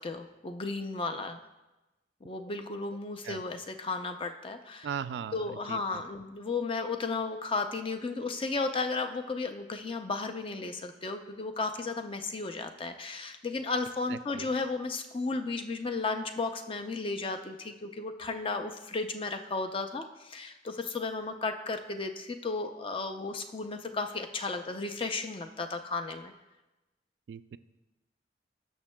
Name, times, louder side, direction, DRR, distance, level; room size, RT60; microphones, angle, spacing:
voice 1, 0.0-1.4 2.2-4.9 5.3-26.3, left 3 dB, 30° left, 7 dB, 0.5 m, -34 dB
voice 2, 4.8-6.2 14.1-14.5 27.3-27.6, right 7 dB, 65° right, 13 dB, 0.3 m, -39 dB
17.5 x 6.3 x 2.2 m, 1.1 s
head